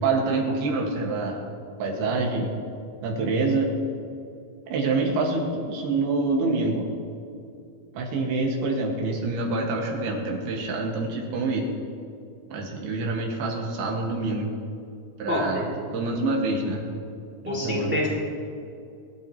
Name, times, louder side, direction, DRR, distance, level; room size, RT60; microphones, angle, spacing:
voice 1, 0.0-1.4 1.8-2.5 3.0-3.7 4.7-6.9 7.9-11.7 12.5-14.5 15.2-15.6 15.9-16.9 17.5-18.0, right 3 dB, 85° right, -1 dB, 3.6 m, -26 dB
voice 2, 15.3-15.7 17.4-18.1, left 1 dB, 5° right, -3 dB, 2.0 m, -26 dB
21.5 x 12.0 x 3.0 m, 2.5 s
omnidirectional pair, 4.4 m